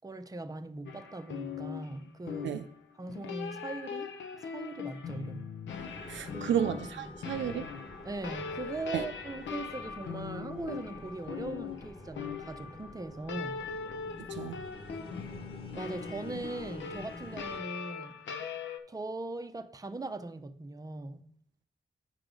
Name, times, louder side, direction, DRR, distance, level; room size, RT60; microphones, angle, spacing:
voice 1, 0.0-2.6 2.9-4.1 4.4-5.5 6.3-6.6 7.0-7.1 8.0-13.6 15.7-18.2 18.9-21.3, right 2 dB, 20° right, 0.6 m, -40 dB
sound 1, 0.9-18.8, left 6 dB, 80° left, 0.6 m, -41 dB
sound 2, 5.7-17.6, left 2 dB, 30° left, 1.3 m, -48 dB
voice 2, 6.1-7.7 8.9-9.0 14.3-14.6, right 9 dB, 80° right, 0.4 m, -32 dB
9.0 x 4.7 x 3.8 m
cardioid pair, 55°, 19 cm